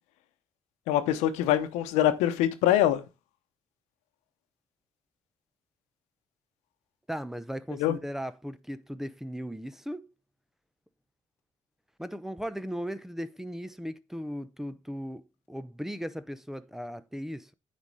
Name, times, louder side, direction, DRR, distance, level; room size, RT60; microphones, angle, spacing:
voice 1, 0.9-3.0 7.8-8.0, left 12 dB, 90° left, 0.9 m, -24 dB
voice 2, 7.1-10.1 12.0-15.2 15.5-17.5, equal, 5° right, 0.7 m, -37 dB
9.5 x 4.2 x 4.8 m
supercardioid pair, 65°, 11 cm